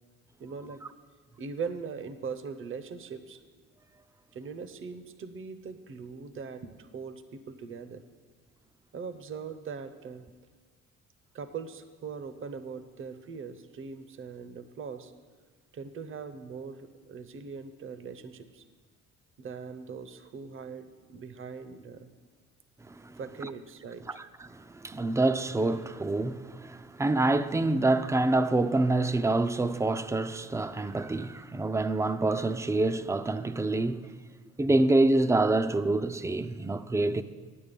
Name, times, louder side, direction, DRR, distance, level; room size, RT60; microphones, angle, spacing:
voice 1, 0.4-0.8 1.4-3.4 4.3-8.0 8.9-10.2 11.3-15.1 15.7-18.6 19.4-22.1 23.2-24.2, right 5 dB, 45° right, 0.7 m, -41 dB
voice 2, 22.9-23.5 24.1-24.2 24.5-34.1 34.6-37.2, right 2 dB, 10° right, 0.4 m, -27 dB
9.1 x 8.7 x 5.3 m
cardioid pair, 90°, 30 cm